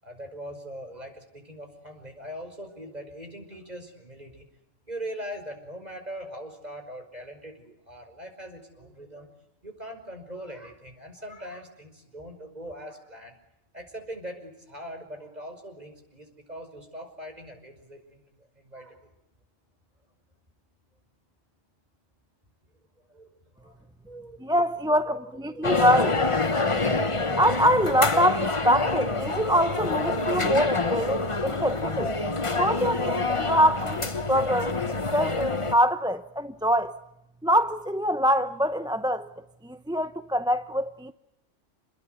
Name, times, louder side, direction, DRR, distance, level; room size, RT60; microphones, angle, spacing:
voice 1, 0.0-4.5 4.9-9.3 9.6-13.3 13.7-19.1 23.1-23.3 23.5-24.4 24.9-25.8, equal, 35° right, 5.7 m, -41 dB
voice 2, 24.4-26.2 27.4-32.1 32.6-34.7 35.1-37.0 37.4-39.3 39.6-41.1, equal, 5° right, 0.7 m, -24 dB
sound 1, 25.6-35.8, left 3 dB, 25° left, 1.2 m, -27 dB
29.0 x 21.0 x 8.2 m
omnidirectional pair, 1.3 m